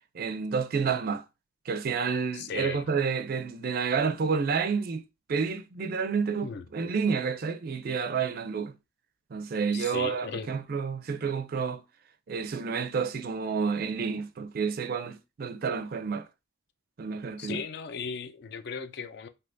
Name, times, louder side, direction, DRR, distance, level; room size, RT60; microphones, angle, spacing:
voice 1, 0.1-1.2 1.7-5.0 5.3-8.7 9.3-11.8 12.3-16.3 17.0-17.6, right 5 dB, 50° right, 0.4 m, -29 dB
voice 2, 2.3-2.8 6.4-6.6 9.7-10.5 17.4-19.3, left 5 dB, 55° left, 0.4 m, -36 dB
3.4 x 2.7 x 2.6 m
head